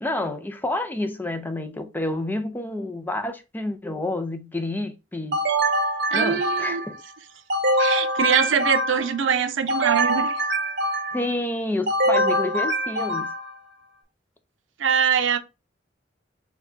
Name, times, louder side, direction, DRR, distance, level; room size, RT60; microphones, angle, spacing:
voice 1, 0.0-5.5 6.1-7.0 11.1-13.3, left 1 dB, 10° left, 0.5 m, -29 dB
sound 1, 5.3-7.0 7.5-9.2 9.7-11.3 11.9-13.6, right 1 dB, 60° right, 1.1 m, -24 dB
voice 2, 6.1-6.8 7.8-10.4 14.8-15.4, right 7 dB, 85° right, 0.5 m, -23 dB
4.6 x 2.3 x 3.8 m
head